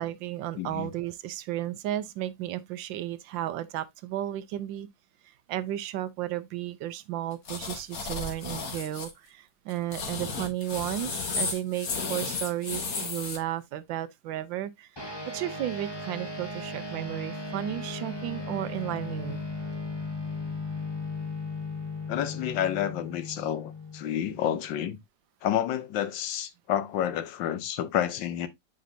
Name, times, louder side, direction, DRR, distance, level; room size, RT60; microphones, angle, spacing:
voice 1, 0.0-4.9 5.5-19.4, right 13 dB, 80° right, 1.3 m, -33 dB
voice 2, 0.6-0.9 22.1-25.0 25.4-28.5, left 10 dB, 75° left, 1.5 m, -29 dB
sound 1, 7.5-9.1 9.7-13.4, left 4 dB, 55° left, 1.7 m, -33 dB
sound 2, 15.0-24.7, left 3 dB, 15° left, 1.2 m, -37 dB
7.6 x 5.1 x 2.6 m
omnidirectional pair, 2.0 m